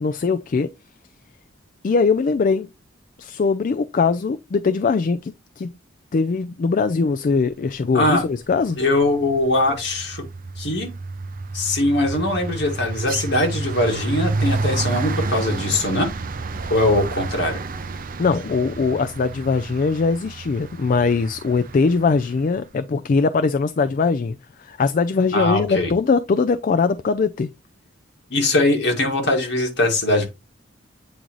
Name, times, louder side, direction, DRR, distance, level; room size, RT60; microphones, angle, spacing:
voice 1, 0.0-0.7 1.8-2.7 3.2-5.7 6.1-8.8 18.2-27.5, left 4 dB, 45° left, 0.4 m, -21 dB
sound 1, 8.4-8.8 9.1-22.2, right 3 dB, 45° right, 0.6 m, -29 dB
voice 2, 8.8-10.2 10.6-10.9 11.5-16.1 16.7-17.6 25.3-25.9 28.3-30.3, left 1 dB, 60° left, 2.0 m, -21 dB
8.5 x 3.8 x 3.0 m
head